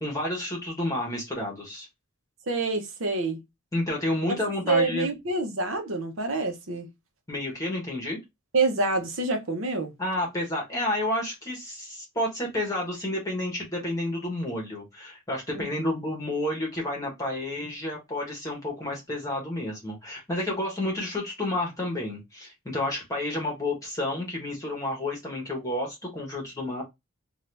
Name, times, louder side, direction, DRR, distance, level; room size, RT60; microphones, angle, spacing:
voice 1, 0.0-1.9 3.7-5.1 7.3-8.2 10.0-26.8, left 1 dB, 15° left, 1.0 m, -30 dB
voice 2, 2.5-3.4 4.3-4.4 4.6-6.9 8.5-9.9 15.5-15.9, right 3 dB, 65° right, 0.8 m, -27 dB
2.7 x 2.4 x 3.3 m
head